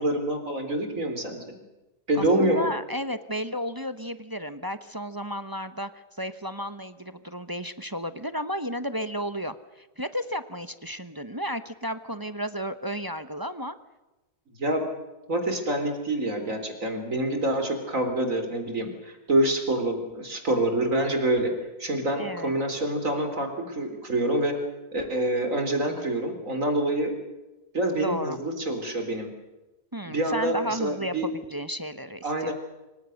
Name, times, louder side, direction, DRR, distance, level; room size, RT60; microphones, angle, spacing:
voice 1, 0.0-1.4 2.1-2.7 14.6-14.8 15.3-21.5 21.8-24.5 24.9-27.1 27.7-29.3 30.0-31.3 32.2-32.5, right 1 dB, 55° right, 6 dB, 4.1 m, -26 dB
voice 2, 2.2-5.9 6.2-13.7 22.2-22.5 28.0-28.4 29.9-32.5, equal, 15° right, 11 dB, 0.9 m, -33 dB
26.5 x 24.5 x 6.6 m, 1.1 s
omnidirectional pair, 1.7 m